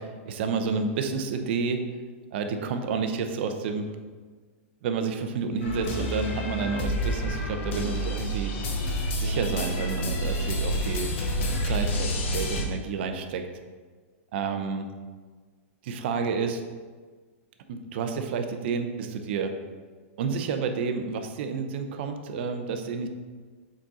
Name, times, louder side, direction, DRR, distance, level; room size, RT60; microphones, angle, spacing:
voice 1, 0.0-1.8 2.3-3.9 4.8-8.5 9.1-11.1 11.6-13.5 14.3-14.9 15.8-16.6 17.7-19.6 20.2-23.1, right 5 dB, 50° right, 6 dB, 0.7 m, -30 dB
sound 1, 5.6-12.6, equal, 60° left, 1.1 m, -28 dB
7.2 x 4.1 x 3.8 m, 1.5 s
supercardioid pair, 160°, 7 cm